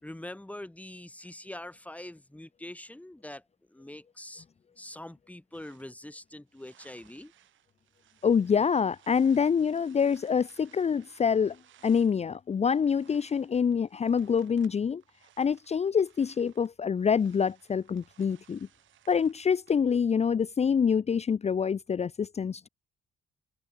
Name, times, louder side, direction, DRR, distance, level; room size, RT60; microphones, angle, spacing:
voice 1, 0.0-3.4 3.7-4.5 4.8-7.3, left 1 dB, 5° left, 3.5 m, -44 dB
wood rocks metal tg, 5.5-19.8, right 12 dB, 75° right, 5.7 m, -62 dB
voice 2, 8.2-11.6 11.8-15.0 15.4-18.6 19.1-22.7, left 6 dB, 35° left, 0.7 m, -26 dB
cardioid pair, 90°, 20 cm